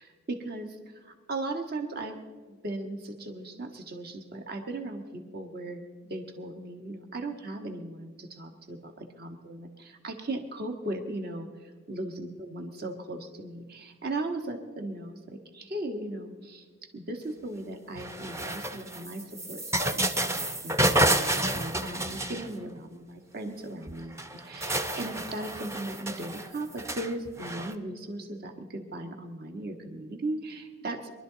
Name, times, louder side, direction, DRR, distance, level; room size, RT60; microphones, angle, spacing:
voice 1, 0.0-2.2 2.5-5.8 6.1-31.1, right 2 dB, 50° right, 4 dB, 1.4 m, -37 dB
sound 1, 18.0-22.8 23.9-24.0 24.2-27.7, right 1 dB, 15° right, 0.6 m, -29 dB
23.0 x 12.0 x 4.0 m, 1.5 s
head